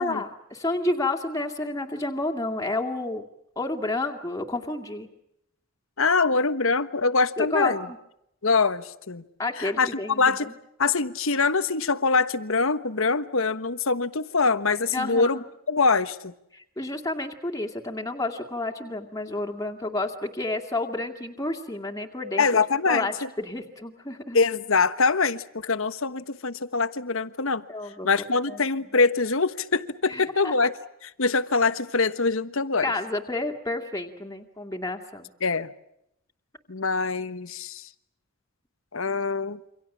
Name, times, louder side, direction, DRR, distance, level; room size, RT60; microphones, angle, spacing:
voice 1, 0.0-3.2 3.6-5.1 7.4-8.0 9.4-10.4 14.9-15.4 16.5-22.6 22.9-24.4 27.7-28.1 28.5-28.6 30.1-30.5 32.8-35.3, left 2 dB, 15° left, 2.4 m, -30 dB
voice 2, 6.0-7.9 8.4-9.2 9.6-9.9 10.2-10.5 10.8-15.4 15.7-16.3 22.4-23.3 24.3-27.6 28.0-30.7 31.0-32.9 35.4-35.7 36.7-37.9 38.9-39.6, left 4 dB, 70° left, 1.3 m, -24 dB
28.0 x 25.5 x 7.5 m
head